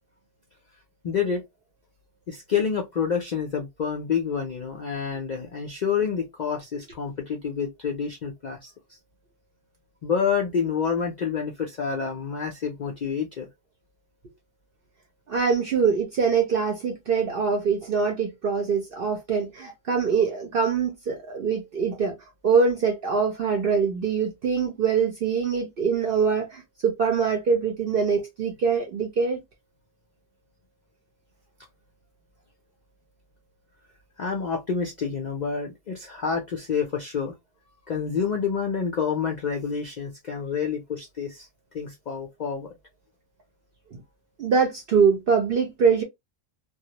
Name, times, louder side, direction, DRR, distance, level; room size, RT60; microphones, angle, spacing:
voice 1, 1.0-1.4 2.3-8.7 10.0-13.5 19.6-19.7 34.2-37.3 37.9-41.5 41.7-42.7, left 6 dB, 65° left, 0.4 m, -28 dB
voice 2, 15.3-22.2 22.4-29.4 43.9-44.0 44.4-46.0, right 5 dB, 55° right, 0.7 m, -23 dB
2.3 x 2.0 x 2.8 m
omnidirectional pair, 1.3 m